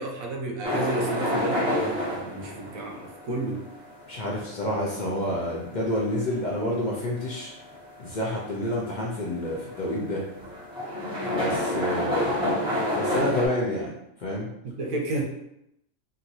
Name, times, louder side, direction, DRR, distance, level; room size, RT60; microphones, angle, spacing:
voice 1, 0.0-3.7 14.6-15.2, right 2 dB, 85° right, 1 dB, 1.0 m, -32 dB
sound 1, 0.6-13.5, left 1 dB, 5° right, 0.9 m, -29 dB
voice 2, 4.1-7.5 8.0-10.2 11.3-12.5 12.9-13.9 14.2-14.5, left 1 dB, 70° left, -4 dB, 0.4 m, -29 dB
2.9 x 2.5 x 2.6 m, 0.80 s
omnidirectional pair, 1.4 m